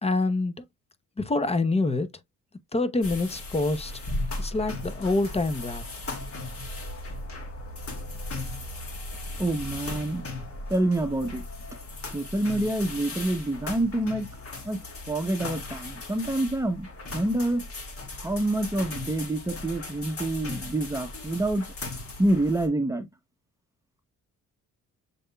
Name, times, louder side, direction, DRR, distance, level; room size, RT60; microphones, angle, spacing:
voice 1, 0.0-0.5 1.2-2.1 2.7-3.9 4.4-5.8, left 2 dB, 20° left, 0.8 m, -26 dB
sound 1, 3.0-22.7, left 2 dB, 50° left, 2.3 m, -37 dB
voice 2, 9.4-10.2 10.7-11.4 12.1-14.3 14.6-14.8 15.1-16.9 17.1-17.6 18.2-21.6 22.2-23.1, right 1 dB, 10° right, 0.9 m, -27 dB
6.6 x 3.5 x 2.3 m
cardioid pair, 90°, 30 cm